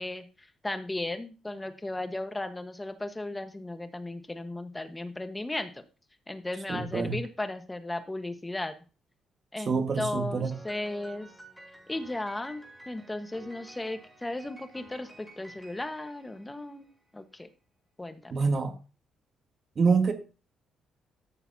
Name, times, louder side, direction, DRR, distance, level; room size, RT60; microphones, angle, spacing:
voice 1, 0.0-5.8 6.3-8.7 9.5-11.3 11.9-16.9 17.1-17.5 18.0-18.3, left 2 dB, 15° left, 1.3 m, -36 dB
voice 2, 6.7-7.2 9.7-10.5 18.3-18.8 19.7-20.1, right 5 dB, 45° right, 1.7 m, -26 dB
Piano, 10.5-17.0, right 1 dB, 5° right, 4.3 m, -51 dB
14.0 x 6.9 x 2.8 m
cardioid pair, 90°, 0 cm